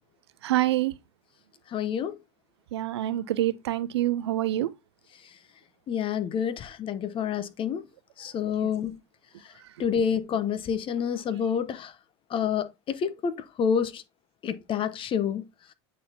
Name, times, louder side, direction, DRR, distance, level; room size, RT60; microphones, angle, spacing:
voice 1, 0.4-0.9 2.7-4.7 8.6-8.7, right 14 dB, 85° right, 0.5 m, -26 dB
voice 2, 1.7-2.2 5.9-7.8 8.2-9.0 9.8-11.9 12.3-14.0 14.4-15.4, left 7 dB, 40° left, 0.9 m, -28 dB
8.5 x 4.1 x 2.8 m
hypercardioid pair, 90°, 14 cm